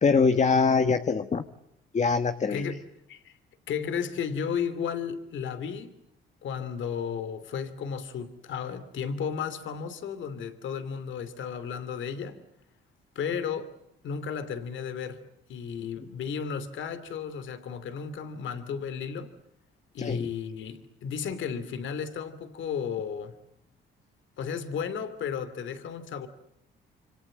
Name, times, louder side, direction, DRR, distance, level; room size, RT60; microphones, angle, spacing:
voice 1, 0.0-1.4 1.9-2.7 20.0-20.2, left 5 dB, 35° left, 1.4 m, -23 dB
voice 2, 2.5-2.8 3.1-3.4 3.7-6.0 6.4-12.4 13.1-13.7 14.0-15.2 15.5-19.3 19.9-23.4 24.4-26.3, left 7 dB, 75° left, 2.8 m, -34 dB
27.5 x 26.0 x 7.7 m
cardioid pair, 90°, 20 cm